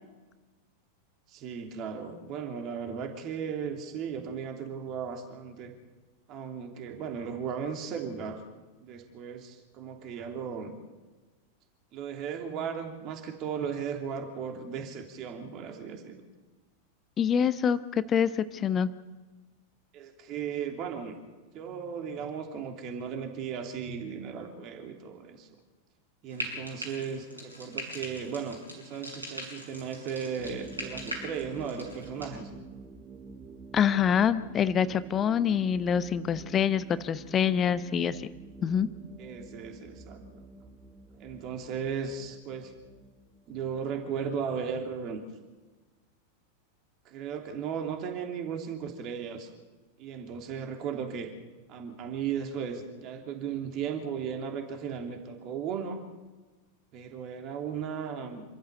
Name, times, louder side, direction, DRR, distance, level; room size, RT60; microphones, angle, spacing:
voice 1, 1.3-5.7 6.3-8.4 8.8-10.7 11.9-16.2 19.9-21.1 21.5-25.5 26.2-32.5 39.2-40.4 41.2-42.7 43.5-45.2 47.0-49.5 50.0-51.3 51.7-56.0 56.9-58.4, right 7 dB, 40° right, 4 dB, 3.1 m, -36 dB
voice 2, 17.2-18.9 33.7-38.2 38.6-38.9, left 8 dB, 25° left, 14 dB, 0.8 m, -26 dB
Frying (food), 26.3-32.3, equal, 85° right, 6.6 m, -41 dB
sound 1, 30.4-44.8, right 3 dB, 20° right, 1.6 m, -48 dB
27.0 x 14.0 x 8.2 m, 1.2 s
figure-of-eight pair, 90°, 0 cm